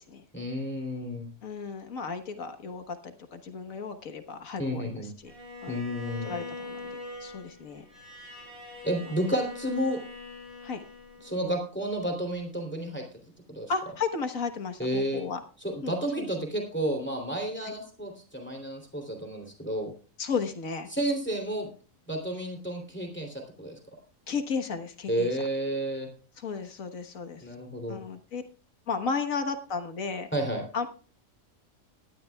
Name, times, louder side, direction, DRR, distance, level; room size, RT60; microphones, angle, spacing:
voice 1, 0.3-1.3 4.6-5.1 5.7-6.3 8.8-10.0 11.2-13.0 13.5-13.7 14.8-15.2 15.6-19.9 20.9-21.7 22.1-23.8 25.1-26.1 27.4-28.0 30.3-30.6, equal, 10° left, 3 dB, 2.9 m, -31 dB
voice 2, 1.4-5.3 5.6-5.8 6.2-7.8 10.6-10.8 13.7-15.4 15.8-16.3 20.2-20.9 24.3-25.3 26.4-27.4 27.9-28.4 28.9-30.3 30.7-30.9, left 5 dB, 75° left, 8 dB, 1.7 m, -34 dB
Bowed string instrument, 5.3-11.5, left 2 dB, 85° right, 6.9 m, -43 dB
19.0 x 12.0 x 2.3 m, 0.37 s
omnidirectional pair, 1.4 m